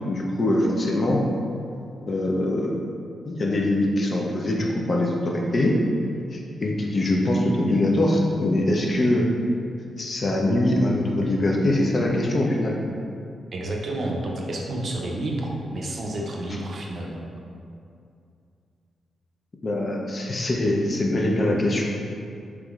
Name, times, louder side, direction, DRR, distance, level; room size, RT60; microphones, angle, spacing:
voice 1, 0.1-1.2 2.1-2.7 3.2-5.8 6.3-9.2 10.0-12.8 16.5-16.6 19.6-21.8, left 1 dB, 50° left, -1 dB, 0.5 m, -23 dB
voice 2, 13.5-17.2, right 1 dB, 60° right, -1 dB, 0.5 m, -30 dB
3.4 x 3.0 x 2.3 m, 2.4 s
supercardioid pair, 50°, 0 cm